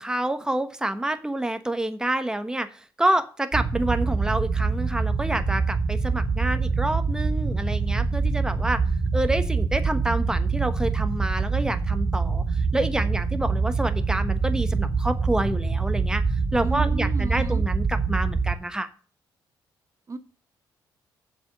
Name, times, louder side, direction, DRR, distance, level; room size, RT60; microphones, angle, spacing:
voice 1, 0.0-8.8 9.1-16.2 16.5-18.9, right 1 dB, 10° right, 9 dB, 1.1 m, -28 dB
sound 1, 3.5-18.5, right 4 dB, 55° right, 2.0 m, -25 dB
voice 2, 16.6-17.6 20.1-20.2, right 4 dB, 40° right, 10 dB, 0.9 m, -33 dB
7.4 x 5.3 x 7.4 m, 0.38 s
cardioid pair, 80°, 8 cm